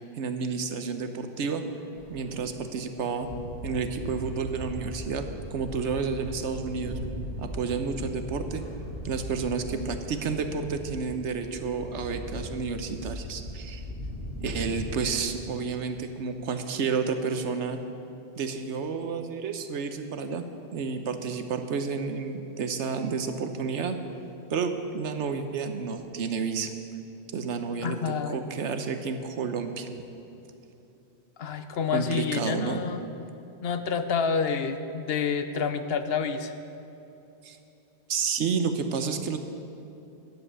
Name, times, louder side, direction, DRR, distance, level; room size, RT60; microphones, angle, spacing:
voice 1, 0.1-1.7 2.1-3.3 3.6-5.2 5.5-7.0 7.4-8.6 9.0-13.8 14.4-17.8 18.4-20.4 20.7-24.0 24.5-26.7 27.3-29.9 31.9-32.8 37.4-37.6 38.1-39.4, right 5 dB, 90° right, 8 dB, 1.2 m, -30 dB
sound 1, 2.0-15.1, equal, 25° left, 3.3 m, -38 dB
voice 2, 27.8-28.4 31.4-33.0 33.6-36.5, left 6 dB, 65° left, 9 dB, 0.9 m, -28 dB
10.5 x 7.8 x 8.1 m, 2.9 s
omnidirectional pair, 1.1 m